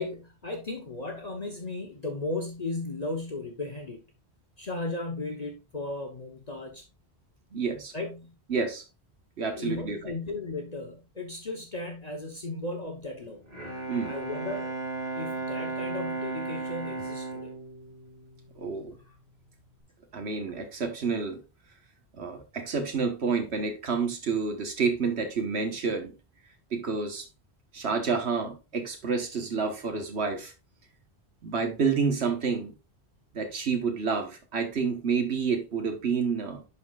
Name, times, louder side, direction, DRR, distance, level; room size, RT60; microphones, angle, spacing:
voice 1, 0.0-4.0 4.6-6.8 7.9-8.3 9.4-13.4 14.0-14.7 15.1-17.5 19.1-19.2, left 2 dB, 40° left, 1.1 m, -35 dB
voice 2, 7.5-7.9 8.5-8.8 9.4-10.0 13.9-14.1 18.6-19.0 20.1-21.4 22.1-26.1 26.7-27.3 27.7-30.5 31.4-32.7 33.3-36.6, right 5 dB, 85° right, 1.5 m, -29 dB
Bowed string instrument, 13.3-19.0, right 3 dB, 40° right, 2.4 m, -35 dB
11.0 x 4.4 x 2.4 m
omnidirectional pair, 1.1 m